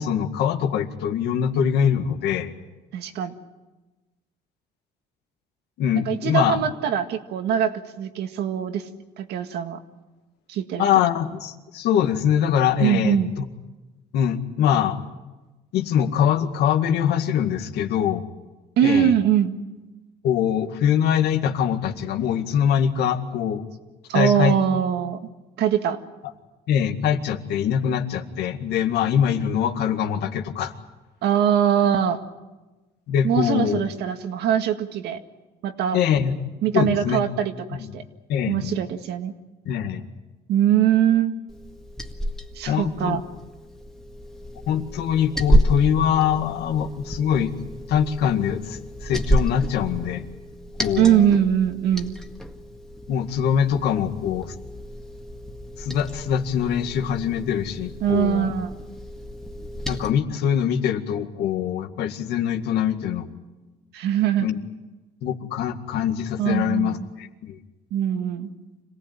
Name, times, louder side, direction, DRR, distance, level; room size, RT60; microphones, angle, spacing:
voice 1, 0.0-2.5 5.8-6.6 10.8-13.2 14.1-15.0 15.7-18.2 18.8-19.1 20.2-23.6 24.1-24.6 26.7-30.7 33.1-33.8 35.9-36.3 36.7-37.2 37.7-37.9 38.3-38.7 39.7-40.0 42.7-43.2 44.7-47.5 47.9-50.3 50.8-51.3 53.1-54.5 55.8-58.5 59.9-63.3 64.4-64.6 65.2-67.6, left 9 dB, 80° left, 6 dB, 2.0 m, -23 dB
voice 2, 2.9-3.3 6.1-8.9 9.2-9.8 10.5-10.8 12.8-13.3 18.8-19.5 24.1-25.2 25.6-26.0 31.2-32.2 33.2-35.2 35.6-36.0 36.6-38.0 38.5-39.3 40.5-41.3 42.6-43.2 51.0-52.1 58.0-58.7 63.9-64.5 66.4-67.0 67.9-68.5, right 9 dB, 75° right, 7 dB, 1.9 m, -22 dB
Liquid, 41.5-60.1, equal, 5° left, 1.8 m, -30 dB
26.5 x 18.0 x 9.1 m, 1.2 s
cardioid pair, 110°, 17 cm